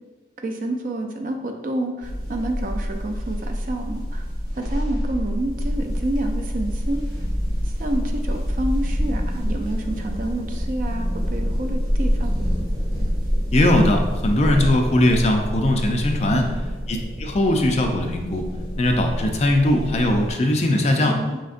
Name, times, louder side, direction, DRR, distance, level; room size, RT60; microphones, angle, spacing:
voice 1, 0.4-4.2 4.6-7.0 7.6-12.3 16.3-16.7 21.0-21.4, right 1 dB, 45° right, 4 dB, 0.4 m, -29 dB
sound 1, 2.0-20.3, equal, 25° right, 0.8 m, -26 dB
voice 2, 13.5-16.4 16.9-18.4 18.8-21.2, left 1 dB, 35° left, 3 dB, 0.4 m, -20 dB
4.2 x 3.8 x 2.4 m, 1.2 s
head